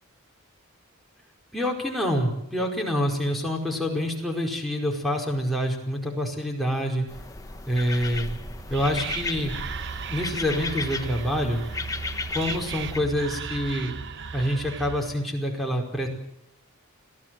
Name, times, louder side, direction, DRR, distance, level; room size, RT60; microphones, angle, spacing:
voice 1, 1.5-7.1 7.7-8.3 8.7-9.5 10.1-11.6 12.3-14.0 14.3-16.1, equal, ahead, -2 dB, 5.0 m, -26 dB
sound 1, 7.1-13.0, left 3 dB, 15° left, 1.2 m, -35 dB
Whispering, 8.3-15.2, right 6 dB, 55° right, 1.0 m, -36 dB
27.0 x 17.0 x 7.8 m, 0.80 s
head